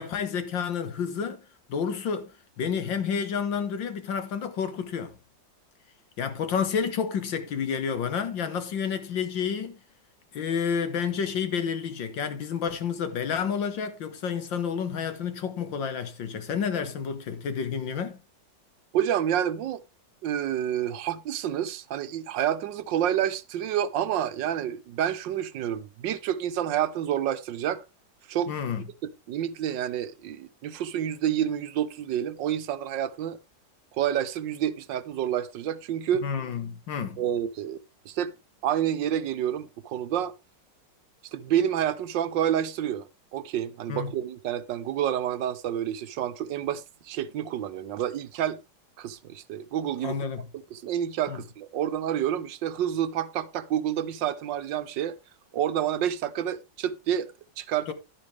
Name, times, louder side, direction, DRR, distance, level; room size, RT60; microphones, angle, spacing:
voice 1, 0.0-1.4 1.7-2.3 2.6-5.2 6.2-9.8 10.3-18.2 28.5-28.8 36.2-37.2 43.9-44.2 50.0-50.4 51.3-51.4 57.9-58.0, left 7 dB, 90° left, 2.1 m, -30 dB
voice 2, 18.9-19.8 20.2-27.8 28.3-28.5 29.3-33.4 33.9-36.2 37.2-37.8 38.0-38.3 38.6-40.3 41.3-43.1 43.3-48.6 49.0-50.1 50.7-55.2 55.5-57.9, right 10 dB, 80° right, 1.5 m, -28 dB
11.0 x 10.0 x 3.3 m
omnidirectional pair, 2.0 m